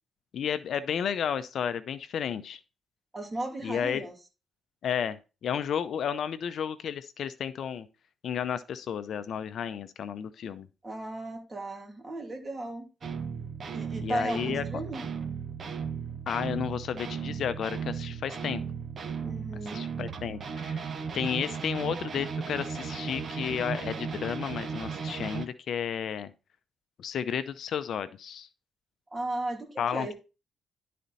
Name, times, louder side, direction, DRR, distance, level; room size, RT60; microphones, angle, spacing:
voice 1, 0.3-2.6 3.6-4.0 4.8-7.9 8.2-10.7 14.0-14.6 16.3-18.6 19.7-20.8 21.1-26.3 27.0-28.5 29.8-30.1, left 8 dB, 65° left, 0.6 m, -32 dB
voice 2, 3.1-4.1 10.8-12.8 13.7-15.0 19.2-19.8 29.1-30.1, right 1 dB, 20° right, 2.6 m, -35 dB
sound 1, 13.0-25.4, right 6 dB, 45° right, 1.2 m, -36 dB
11.5 x 4.2 x 4.1 m
cardioid pair, 90°, 0 cm